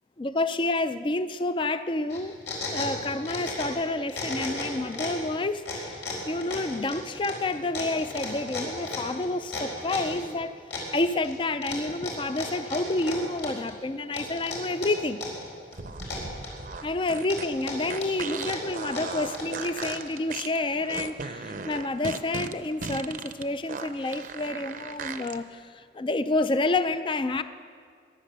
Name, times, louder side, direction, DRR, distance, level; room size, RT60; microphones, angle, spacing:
voice 1, 0.2-2.3 2.7-10.5 10.9-15.2 16.8-27.4, left 2 dB, 30° left, 11 dB, 0.4 m, -29 dB
sound 1, 2.1-3.8 4.1-5.2 5.6-10.2 10.7-11.3 11.6-13.7 14.1-15.4 15.7-16.7 17.2-20.1, left 3 dB, 90° left, 4.3 m, -35 dB
sound 2, 15.7-25.4, right 4 dB, 50° right, 0.7 m, -37 dB
21.5 x 8.4 x 6.8 m, 2.1 s
head